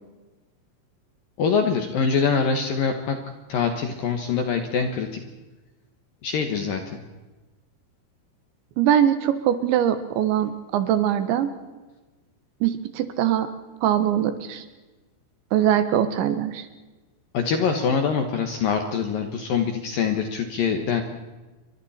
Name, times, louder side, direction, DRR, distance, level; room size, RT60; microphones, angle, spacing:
voice 1, 1.4-3.2 3.5-5.2 6.2-7.0 17.3-21.0, left 6 dB, 65° left, 5 dB, 2.4 m, -24 dB
voice 2, 8.8-11.5 12.6-13.5 13.8-14.6 15.5-16.7, right 10 dB, 75° right, 10 dB, 3.3 m, -22 dB
28.5 x 24.0 x 4.3 m, 1.2 s
omnidirectional pair, 5.8 m